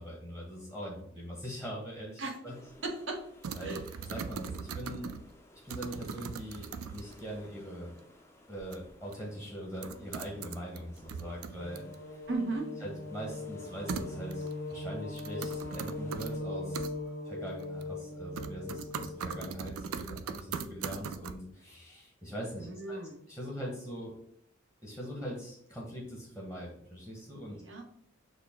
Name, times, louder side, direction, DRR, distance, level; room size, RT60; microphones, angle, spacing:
voice 1, 0.0-2.5 3.5-5.1 5.6-7.9 8.5-11.8 12.1-12.2 12.8-16.9 17.2-23.0 23.3-24.1 24.8-27.6, equal, 5° right, -3 dB, 0.9 m, -42 dB
sound 1, 2.4-16.4, left 1 dB, 10° left, 0.4 m, -57 dB
voice 2, 2.8-3.3 3.6-3.8 12.3-12.7 22.6-23.2 27.5-27.8, right 3 dB, 60° right, 2 dB, 0.9 m, -36 dB
sound 2, 3.4-5.3 5.7-7.2 8.7-8.8 9.1-9.2 9.8-10.8 11.1-12.0 13.9-14.5 15.2-16.3 16.7-16.9 17.6-18.1 18.4-21.3, right 6 dB, 90° right, 0.4 m, -39 dB
sound 3, 11.6-19.5, left 2 dB, 70° left, 0.6 m, -40 dB
6.5 x 2.2 x 3.5 m, 0.66 s
head